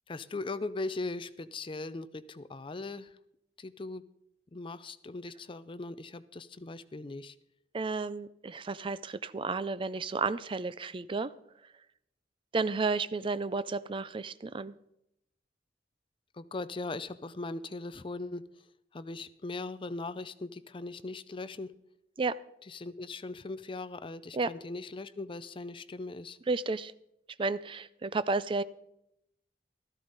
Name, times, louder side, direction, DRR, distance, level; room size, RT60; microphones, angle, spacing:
voice 1, 0.1-3.2 3.6-4.0 4.5-7.4 16.3-18.4 18.9-21.7 22.6-26.4, left 3 dB, 30° left, 14 dB, 0.5 m, -39 dB
voice 2, 7.7-11.3 12.5-14.7 22.2-22.4 24.3-24.5 26.5-26.9 27.4-28.6, right 4 dB, 30° right, 16 dB, 0.4 m, -32 dB
13.5 x 13.0 x 4.0 m, 0.80 s
head